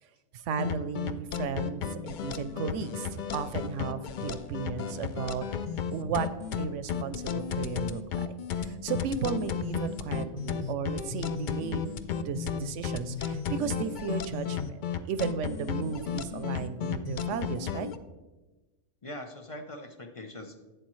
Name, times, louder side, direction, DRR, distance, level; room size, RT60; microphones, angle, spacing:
voice 1, 0.3-5.5 5.9-6.3 6.6-11.9 12.2-14.8 15.0-17.9, right 6 dB, 70° right, 12 dB, 0.9 m, -34 dB
sound 1, 0.6-18.0, left 7 dB, 80° left, 0.4 m, -33 dB
voice 2, 19.0-20.6, left 1 dB, 35° left, 6 dB, 0.6 m, -42 dB
11.5 x 8.0 x 3.1 m, 1.2 s
omnidirectional pair, 1.4 m